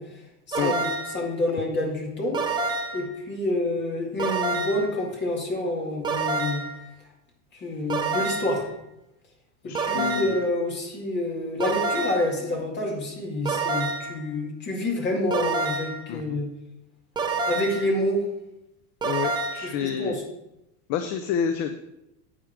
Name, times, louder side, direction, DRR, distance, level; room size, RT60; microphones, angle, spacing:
voice 1, 0.0-2.4 2.9-6.6 7.5-8.7 9.6-16.5 17.5-18.2 19.6-20.2, left 1 dB, 25° left, -2 dB, 2.2 m, -28 dB
sound 1, 0.5-1.2 2.3-3.1 4.2-4.9 6.0-6.8 7.9-8.6 9.7-10.5 11.6-12.3 13.5-14.2 15.3-16.0 17.2-17.9 19.0-19.7, right 3 dB, 10° right, 0.7 m, -28 dB
voice 2, 9.6-10.4 16.1-16.4 19.0-20.2 20.9-21.8, left 8 dB, 40° left, 7 dB, 0.4 m, -28 dB
8.8 x 4.9 x 4.6 m, 0.88 s
supercardioid pair, 140°, 46 cm